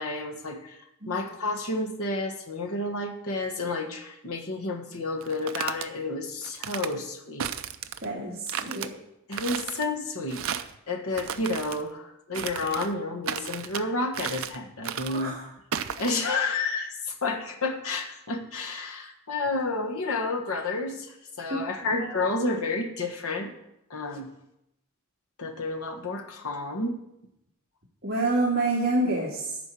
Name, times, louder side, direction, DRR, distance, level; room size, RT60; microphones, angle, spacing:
voice 1, 0.0-7.5 9.3-10.5 10.9-15.4 16.0-23.5 23.9-24.3 25.4-27.0, left 3 dB, 90° left, 2 dB, 1.4 m, -30 dB
sound 1, 5.2-5.9 6.4-6.9 7.4-8.1 8.5-8.9 9.3-9.9 10.3-10.8 11.1-11.8 12.3-12.9 13.2-13.8 14.1-14.6 14.8-15.3 15.7-16.1, right 8 dB, 75° right, 0.6 m, -34 dB
voice 2, 8.0-8.9 15.1-15.5 21.5-21.6 28.0-29.6, right 2 dB, 45° right, -6 dB, 2.3 m, -27 dB
11.5 x 4.6 x 8.4 m, 0.83 s
head